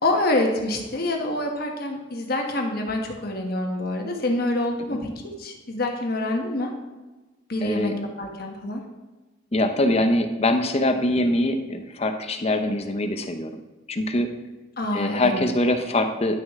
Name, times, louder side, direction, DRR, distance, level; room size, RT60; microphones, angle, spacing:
voice 1, 0.0-6.7 7.5-8.8 14.8-15.4, left 1 dB, 50° left, 2 dB, 1.2 m, -26 dB
voice 2, 7.6-7.9 9.5-13.5 13.9-14.3 14.9-16.4, left 1 dB, 30° left, 7 dB, 0.7 m, -23 dB
10.5 x 6.4 x 3.6 m, 1.2 s
head